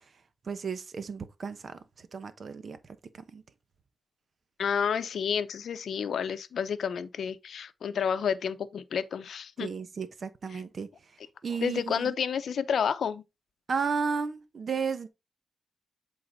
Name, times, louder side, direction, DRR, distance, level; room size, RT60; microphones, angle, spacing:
voice 1, 0.5-1.8 2.1-2.8 3.3-3.4 9.6-10.9 11.4-12.1 13.7-15.1, right 5 dB, 60° right, 1.0 m, -33 dB
voice 2, 4.6-9.7 10.5-10.6 11.6-13.2, left 7 dB, 80° left, 0.6 m, -30 dB
7.9 x 4.0 x 4.0 m
cardioid pair, 75°, 0 cm